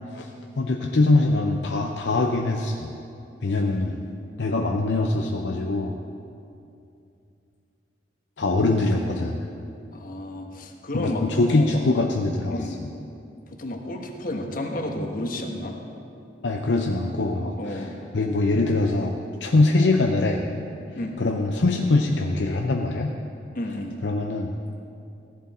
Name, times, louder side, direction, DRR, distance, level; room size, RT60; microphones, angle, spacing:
voice 1, 0.1-2.9 3.4-4.0 4.4-6.0 8.4-9.4 10.9-12.9 16.4-17.9 18.1-19.1 19.4-20.4 21.2-23.1 24.0-24.5, left 2 dB, 75° left, 2 dB, 0.7 m, -23 dB
voice 2, 3.6-4.2 9.9-11.2 11.5-11.9 12.5-12.9 13.6-15.8 17.6-18.0 20.9-21.2 23.5-23.9, left 1 dB, 50° left, 3 dB, 1.3 m, -32 dB
15.0 x 11.0 x 4.2 m, 2.6 s
head